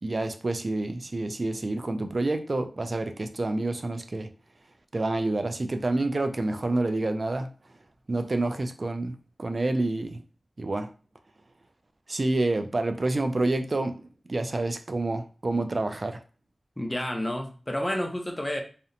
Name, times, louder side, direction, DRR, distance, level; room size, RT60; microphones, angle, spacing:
voice 1, 0.0-4.3 4.9-7.5 8.1-10.2 10.6-10.9 12.1-16.2, right 2 dB, 50° right, 7 dB, 0.3 m, -28 dB
voice 2, 16.8-18.6, left 1 dB, 20° left, 3 dB, 0.5 m, -30 dB
2.8 x 2.0 x 2.5 m, 0.38 s
wide cardioid pair, 70°, 0 cm